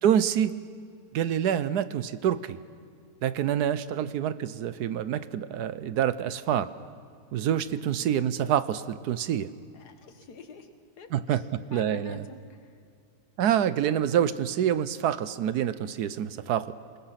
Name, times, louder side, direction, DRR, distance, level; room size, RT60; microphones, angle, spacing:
voice 1, 0.0-0.5 1.1-2.6 3.2-6.7 7.3-9.5 11.1-11.4 11.7-12.2 13.4-16.7, right 10 dB, 75° right, 14 dB, 1.3 m, -26 dB
voice 2, 7.5-8.1 9.7-10.7 11.0-12.8, left 3 dB, 75° left, 8 dB, 2.0 m, -46 dB
27.5 x 19.5 x 5.9 m, 2.3 s
omnidirectional pair, 1.7 m